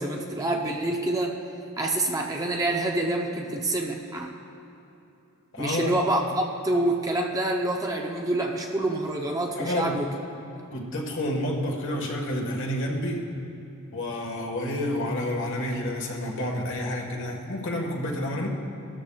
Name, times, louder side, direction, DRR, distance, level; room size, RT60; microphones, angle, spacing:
voice 1, 0.0-1.4 1.8-4.3 5.6-10.6, right 1 dB, 15° right, 1 dB, 0.7 m, -27 dB
voice 2, 5.5-5.9 9.6-10.0 10.7-13.3 13.9-18.5, left 1 dB, 55° left, 0 dB, 1.5 m, -29 dB
18.5 x 13.0 x 2.4 m, 2.9 s
head